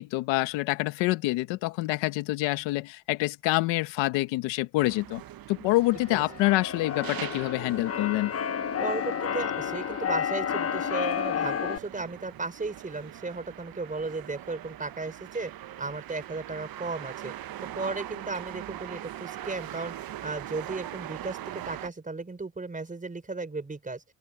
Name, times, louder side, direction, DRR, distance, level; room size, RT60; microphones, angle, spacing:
voice 1, 0.0-5.2 5.5-8.3, left 19 dB, 85° left, 1.5 m, -26 dB
sound 1, 4.8-21.9, right 13 dB, 55° right, 1.1 m, -42 dB
Keyboard (musical), 5.9-11.8, left 8 dB, 35° left, 1.2 m, -31 dB
voice 2, 8.8-15.5 15.8-17.3 17.6-24.0, right 3 dB, 20° right, 4.6 m, -35 dB
open air
cardioid pair, 90°, 43 cm